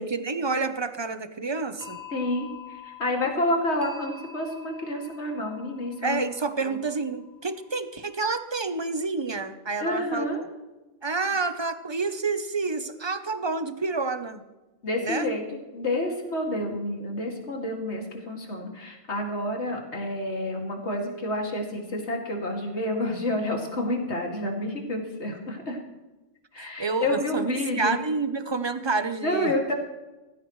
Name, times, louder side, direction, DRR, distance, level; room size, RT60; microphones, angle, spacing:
voice 1, 0.0-2.0 6.0-10.3 11.0-14.4 15.0-15.3 26.6-29.5, right 4 dB, 25° right, 10 dB, 0.6 m, -29 dB
sound 1, 1.8-8.4, left 7 dB, 15° left, 1.5 m, -46 dB
voice 2, 2.1-6.2 6.6-6.7 9.8-10.4 14.8-15.4 15.7-25.8 26.5-28.0 29.2-29.7, left 1 dB, 55° left, 0 dB, 2.7 m, -29 dB
18.0 x 15.5 x 3.2 m, 1.1 s
omnidirectional pair, 1.3 m